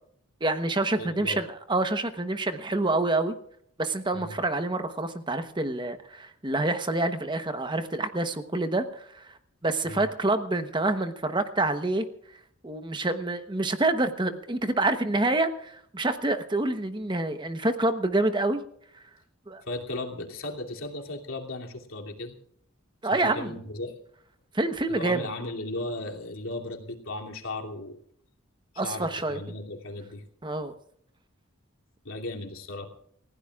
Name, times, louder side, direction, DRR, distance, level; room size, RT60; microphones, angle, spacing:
voice 1, 0.4-3.3 3.8-9.4 9.6-12.0 12.6-18.6 19.5-19.6 23.0-23.5 24.5-25.3 28.8-29.4 30.4-30.7, right 2 dB, 20° right, 8 dB, 1.0 m, -27 dB
voice 2, 1.0-1.4 4.1-4.4 9.8-10.1 19.6-22.4 23.1-24.0 24.9-28.0 28.8-30.2 32.0-32.9, left 2 dB, 75° left, 0 dB, 2.9 m, -36 dB
29.0 x 16.0 x 2.4 m, 0.67 s
head